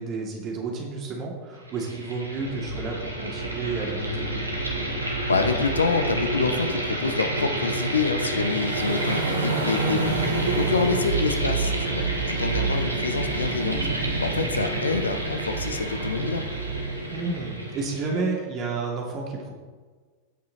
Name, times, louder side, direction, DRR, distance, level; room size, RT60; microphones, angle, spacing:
voice 1, 0.0-4.3 10.8-11.0 14.3-14.6 17.1-19.5, right 4 dB, 35° right, -1 dB, 2.7 m, -31 dB
sound 1, 1.6-18.3, right 1 dB, 85° right, 1.7 m, -29 dB
voice 2, 5.3-10.1 10.6-13.8 14.2-16.4, left 4 dB, 75° left, 8 dB, 0.8 m, -27 dB
sound 2, 8.3-17.7, right 4 dB, 70° right, 1.6 m, -30 dB
16.5 x 5.7 x 4.2 m, 1.4 s
figure-of-eight pair, 90°, 0 cm